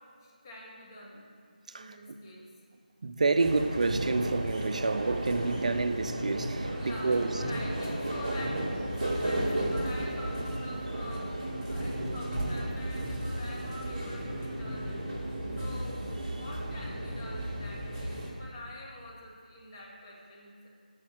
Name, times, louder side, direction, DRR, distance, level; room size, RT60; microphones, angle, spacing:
voice 1, 0.2-1.3 1.7-2.5 6.6-11.3 11.7-15.0 15.6-20.7, left 1 dB, 25° left, 1.0 m, -46 dB
voice 2, 3.0-7.4 16.3-16.4, right 3 dB, 50° right, 0.4 m, -29 dB
sound 1, 3.4-18.3, right 1 dB, 30° right, 1.3 m, -34 dB
6.3 x 4.2 x 6.1 m
figure-of-eight pair, 160°, 5 cm